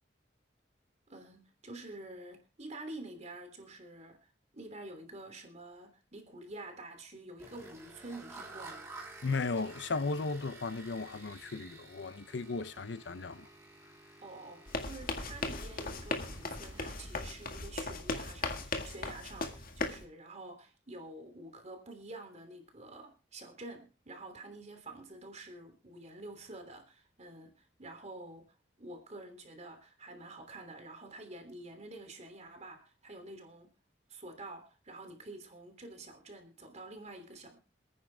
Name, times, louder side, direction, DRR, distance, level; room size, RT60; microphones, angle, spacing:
voice 1, 1.1-4.3 4.5-8.9 14.2-28.5 28.8-33.8 34.1-37.6, right 2 dB, 40° right, 3.2 m, -48 dB
sound 1, 7.4-17.1, right 2 dB, 15° right, 3.6 m, -52 dB
voice 2, 9.2-13.5, left 3 dB, 75° left, 0.7 m, -35 dB
sound 2, 14.7-20.0, left 3 dB, 55° left, 1.9 m, -38 dB
27.5 x 9.8 x 2.4 m
head